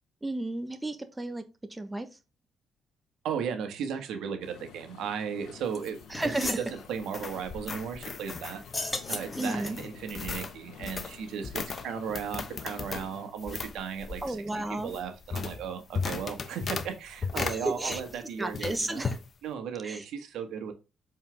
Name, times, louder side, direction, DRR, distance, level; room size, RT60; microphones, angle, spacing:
voice 1, 0.2-1.4 1.7-2.1 6.1-6.6 9.4-9.8 14.2-14.9 17.4-18.0 18.4-19.2 19.8-20.0, right 2 dB, 15° right, 8 dB, 1.1 m, -33 dB
voice 2, 3.2-6.0 6.4-8.6 9.1-14.4 14.8-19.0 19.4-20.7, right 7 dB, 80° right, 6 dB, 1.7 m, -36 dB
sound 1, 4.4-13.3, left 7 dB, 80° left, 1.3 m, -51 dB
sound 2, 5.6-18.2 18.5-19.2, left 5 dB, 45° left, 1.0 m, -37 dB
sound 3, 5.7-5.8 6.1-6.7 8.6-10.0, left 2 dB, 20° left, 1.5 m, -35 dB
7.4 x 4.6 x 3.5 m, 0.29 s
cardioid pair, 90°, 0 cm